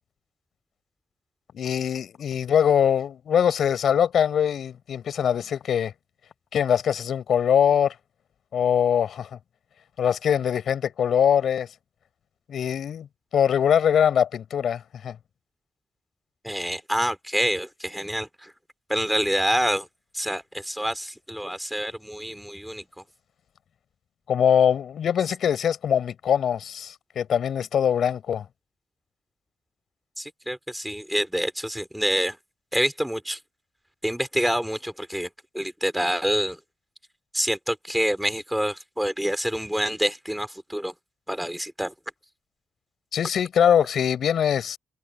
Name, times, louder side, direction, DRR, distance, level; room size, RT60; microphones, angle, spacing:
voice 1, 1.5-5.9 6.5-7.9 8.5-9.3 10.0-11.7 12.5-13.1 13.3-15.2 24.3-28.5 43.1-44.8, left 8 dB, 70° left, 7.2 m, -22 dB
voice 2, 16.4-18.5 18.9-19.9 20.1-23.0 30.2-32.4 32.7-33.4 34.0-35.3 35.5-36.6 37.3-40.9 41.3-41.9, equal, 5° right, 4.0 m, -27 dB
supercardioid pair, 55°, 0 cm